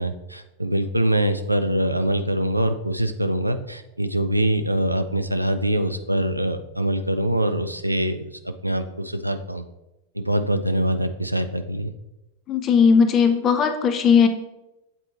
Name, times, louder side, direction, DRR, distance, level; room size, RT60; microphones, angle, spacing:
voice 1, 0.0-9.6 10.1-11.9, right 1 dB, 85° right, 8 dB, 0.4 m, -24 dB
voice 2, 12.5-14.3, left 6 dB, 30° left, 8 dB, 0.7 m, -17 dB
7.8 x 4.4 x 3.0 m, 0.95 s
figure-of-eight pair, 90°, 0 cm